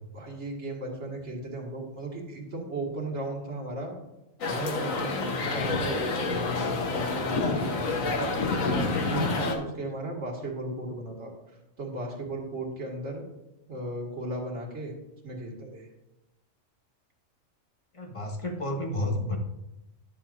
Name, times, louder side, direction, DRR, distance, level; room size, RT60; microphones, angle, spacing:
voice 1, 0.1-3.9 4.5-8.3 8.8-11.3 11.8-13.2 13.7-14.9 15.2-15.9, right 2 dB, 60° right, -2 dB, 2.1 m, -36 dB
sound 1, 4.4-9.6, left 3 dB, 85° left, 1.4 m, -28 dB
voice 2, 5.3-5.7 17.9-19.4, left 1 dB, 25° left, 2 dB, 1.1 m, -31 dB
11.0 x 7.1 x 2.5 m, 0.94 s
omnidirectional pair, 1.4 m